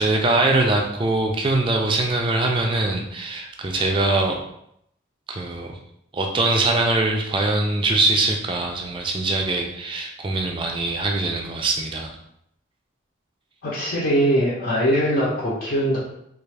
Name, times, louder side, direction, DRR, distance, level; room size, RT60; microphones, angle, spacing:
voice 1, 0.0-4.4 5.3-5.8 6.1-12.1, right 2 dB, 25° right, 2 dB, 0.4 m, -22 dB
voice 2, 13.6-16.0, equal, 50° left, -8 dB, 0.7 m, -21 dB
3.4 x 2.4 x 3.3 m, 0.76 s
head